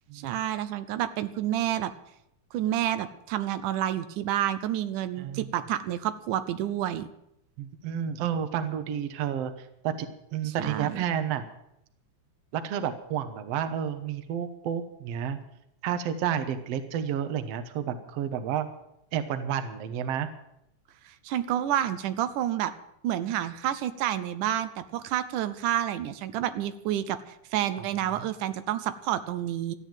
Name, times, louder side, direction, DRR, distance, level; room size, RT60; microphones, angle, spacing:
voice 1, 0.2-1.9 2.5-7.1 10.4-11.0 21.1-22.7 23.0-27.2 27.5-29.8, right 11 dB, 85° right, 12 dB, 2.3 m, -29 dB
voice 2, 7.6-9.5 9.8-11.4 12.5-15.4 15.8-18.7 19.1-20.3, right 9 dB, 65° right, 10 dB, 1.9 m, -30 dB
14.0 x 9.4 x 8.9 m, 0.79 s
omnidirectional pair, 3.5 m